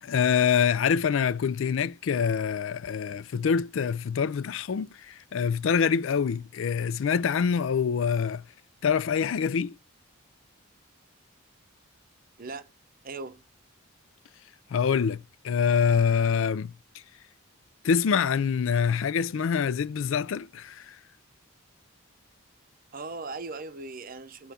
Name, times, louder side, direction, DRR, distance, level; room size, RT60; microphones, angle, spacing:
voice 1, 0.0-8.4 8.8-9.8 14.7-16.7 17.8-21.0, left 6 dB, 65° left, 0.4 m, -25 dB
voice 2, 12.4-12.7 13.0-13.4 22.9-24.5, right 3 dB, 45° right, 0.7 m, -39 dB
6.9 x 3.0 x 5.0 m
head